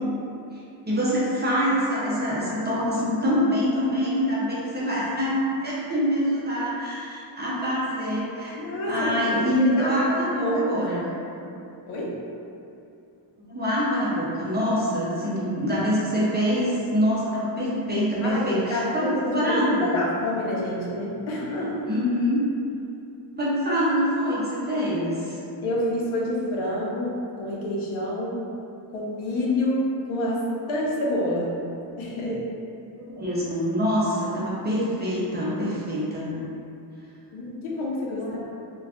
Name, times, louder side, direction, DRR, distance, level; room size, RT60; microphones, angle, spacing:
voice 1, 0.9-5.4 5.6-8.6 8.9-11.1 13.5-20.1 21.9-22.4 23.4-25.4 33.1-36.4 38.2-38.4, equal, 25° right, -8 dB, 0.4 m, -25 dB
voice 2, 8.6-9.3 9.6-10.0 10.4-10.9 11.9-12.2 18.2-21.8 25.6-28.4 28.9-30.4 30.7-31.6 32.0-32.5 37.3-38.4, left 1 dB, 85° left, -4 dB, 0.7 m, -28 dB
2.4 x 2.2 x 3.4 m, 2.6 s
wide cardioid pair, 155°, 47 cm